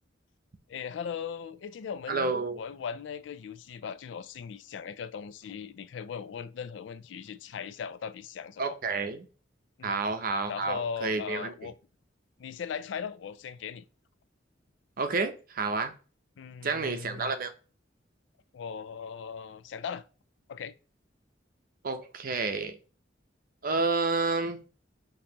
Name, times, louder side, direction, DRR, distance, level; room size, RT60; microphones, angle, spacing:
voice 1, 0.7-8.8 9.8-10.0 10.5-11.7 12.4-13.8 16.4-17.3 18.5-20.0 20.5-20.7, left 7 dB, 70° left, 0.3 m, -38 dB
voice 2, 2.1-2.6 8.6-9.3 9.8-11.5 15.0-15.9 16.6-17.5 21.8-22.8 23.6-24.6, right 3 dB, 50° right, 0.6 m, -30 dB
5.2 x 2.8 x 2.9 m
head